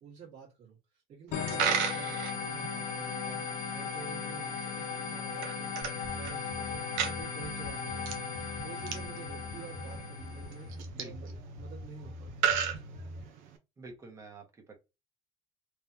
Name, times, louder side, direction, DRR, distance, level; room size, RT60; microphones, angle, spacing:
voice 1, 0.0-8.2 8.6-12.9, right 6 dB, 60° right, 1.9 m, -50 dB
sound 1, 1.3-10.7, left 6 dB, 90° left, 0.8 m, -37 dB
Coin (dropping), 1.3-13.6, right 8 dB, 85° right, 0.9 m, -37 dB
sound 2, 5.8-13.2, left 1 dB, 10° right, 1.6 m, -44 dB
voice 2, 10.9-11.3 13.8-14.7, right 3 dB, 25° right, 1.3 m, -48 dB
3.5 x 3.4 x 2.8 m
cardioid pair, 145°, 12 cm